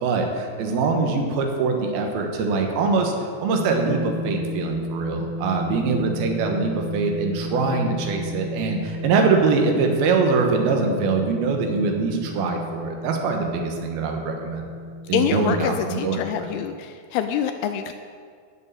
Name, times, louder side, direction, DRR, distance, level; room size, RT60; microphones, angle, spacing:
voice 1, 0.0-14.7 15.1-16.5, right 4 dB, 70° right, 3 dB, 2.9 m, -23 dB
sound 1, 3.5-16.6, left 1 dB, 30° right, 0.9 m, -33 dB
voice 2, 15.1-17.9, left 9 dB, 85° left, 7 dB, 2.3 m, -26 dB
11.0 x 6.4 x 8.9 m, 2.1 s
omnidirectional pair, 5.0 m